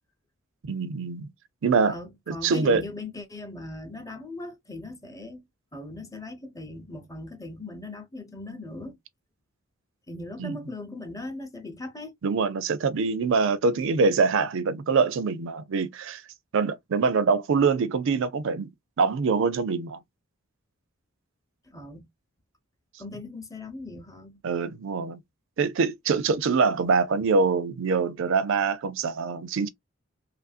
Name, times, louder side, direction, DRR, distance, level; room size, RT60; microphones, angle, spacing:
voice 1, 0.6-1.3 1.6-2.0 2.3-2.8 10.4-10.6 12.2-16.2 16.5-18.7 19.0-20.0 24.4-25.2 25.6-29.7, right 4 dB, 65° right, 0.4 m, -24 dB
voice 2, 1.9-5.4 5.7-9.0 10.1-12.1 21.7-22.1 23.0-24.4, left 2 dB, 15° left, 0.6 m, -39 dB
2.9 x 2.5 x 2.3 m
head